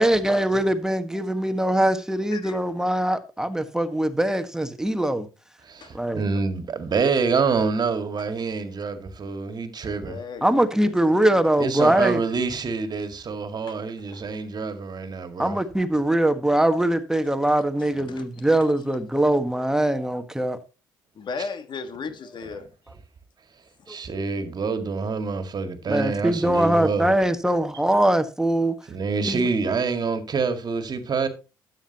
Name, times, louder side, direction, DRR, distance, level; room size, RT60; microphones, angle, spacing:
voice 1, 0.0-5.3 5.9-6.2 10.4-12.2 15.4-20.6 23.9-24.0 25.9-28.7 29.3-29.5, right 1 dB, 5° right, 1.6 m, -22 dB
voice 2, 5.6-10.2 11.6-15.6 23.9-27.1 28.9-31.3, right 4 dB, 45° right, 2.0 m, -26 dB
voice 3, 9.8-11.4 13.6-13.8 14.1-14.4 17.8-18.7 21.1-22.7, left 5 dB, 50° left, 1.7 m, -37 dB
13.0 x 9.1 x 3.0 m
hypercardioid pair, 55°, 10 cm